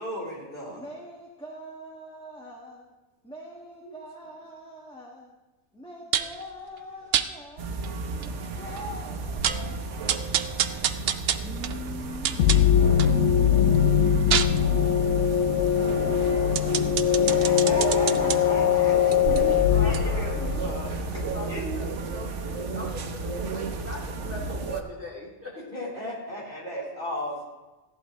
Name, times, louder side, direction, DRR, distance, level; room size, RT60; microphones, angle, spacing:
voice 1, 0.0-0.8 3.8-4.0 17.2-19.0 19.8-21.6 25.7-27.4, left 1 dB, 50° left, -5 dB, 4.2 m, -35 dB
voice 2, 0.7-2.9 3.2-5.3 5.7-7.7 8.6-10.4 11.3-15.0 15.5-17.6, left 1 dB, 5° left, -3 dB, 1.6 m, -43 dB
sound 1, 6.1-6.4 7.1-7.3 7.8-7.9 8.2-8.3 8.8-8.9 9.2-9.7 10.1-13.2 13.6-18.4 19.0-21.7 22.0-22.1, right 9 dB, 65° right, 0.8 m, -29 dB
sound 2, 7.6-24.8, right 4 dB, 85° right, 1.2 m, -34 dB
sound 3, 12.4-21.0, left 9 dB, 90° left, 0.9 m, -22 dB
voice 3, 18.5-20.3 21.1-25.5, left 1 dB, 10° right, -4 dB, 2.4 m, -41 dB
15.5 x 11.5 x 3.1 m, 1.1 s
omnidirectional pair, 1.2 m